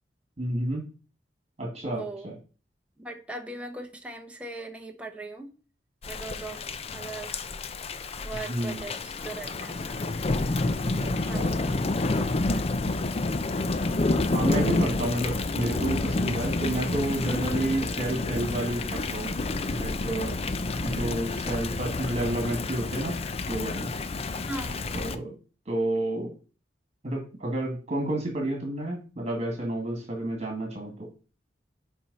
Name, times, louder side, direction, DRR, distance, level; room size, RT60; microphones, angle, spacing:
voice 1, 0.4-0.8 1.6-2.3 8.3-8.8 11.0-11.5 14.3-19.4 19.7-20.4 20.8-23.2 23.5-23.9 24.9-25.3 25.7-26.3 27.0-31.1, right 1 dB, 35° right, 1 dB, 2.1 m, -30 dB
voice 2, 1.8-2.3 3.0-5.5 6.0-6.6 6.9-7.4 8.2-10.4 11.3-11.8 12.2-12.7 24.5-24.8, right 2 dB, 5° right, 2 dB, 1.1 m, -39 dB
Thunder / Rain, 6.0-25.2, left 2 dB, 35° left, 0.5 m, -29 dB
10.5 x 4.5 x 4.2 m, 0.35 s
head